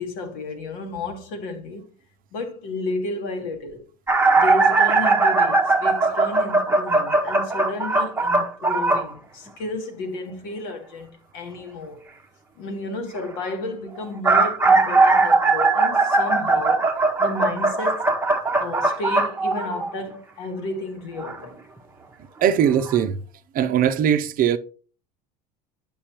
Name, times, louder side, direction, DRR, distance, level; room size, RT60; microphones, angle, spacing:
voice 1, 0.0-1.9 2.3-3.8 4.4-12.0 12.6-16.8 17.2-18.0 18.6-21.6, left 3 dB, 75° left, 1.7 m, -32 dB
sound 1, 4.1-9.1 14.0-20.1 21.2-21.4 22.4-22.5 22.9-23.0, right 3 dB, 10° right, 0.8 m, -19 dB
voice 2, 22.4-23.2 23.5-24.6, right 9 dB, 45° right, 0.6 m, -20 dB
8.6 x 5.4 x 3.0 m
supercardioid pair, 120°, 20 cm